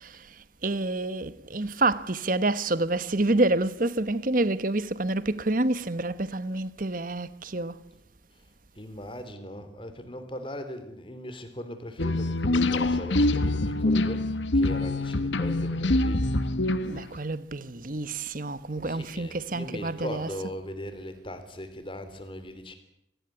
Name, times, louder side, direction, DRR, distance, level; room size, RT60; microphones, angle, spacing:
voice 1, 0.0-7.8 16.9-20.5, right 2 dB, 45° right, 1.2 m, -28 dB
voice 2, 8.7-16.3 18.8-22.8, equal, 25° left, 3.3 m, -39 dB
sound 1, 12.0-17.2, left 2 dB, 75° left, 1.3 m, -25 dB
26.5 x 18.5 x 9.8 m
head